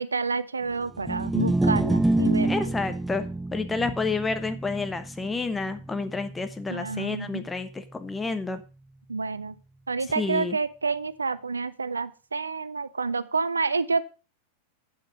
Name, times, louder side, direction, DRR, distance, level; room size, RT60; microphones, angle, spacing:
voice 1, 0.0-2.7 6.7-7.4 9.1-9.6 9.9-14.1, right 4 dB, 75° right, 16 dB, 0.5 m, -29 dB
sound 1, 1.0-7.3, right 2 dB, 5° right, 0.4 m, -28 dB
voice 2, 2.4-3.2 3.5-8.6 10.2-10.6, left 4 dB, 10° left, 9 dB, 1.1 m, -30 dB
8.6 x 7.5 x 5.2 m, 0.33 s
figure-of-eight pair, 90°, 0 cm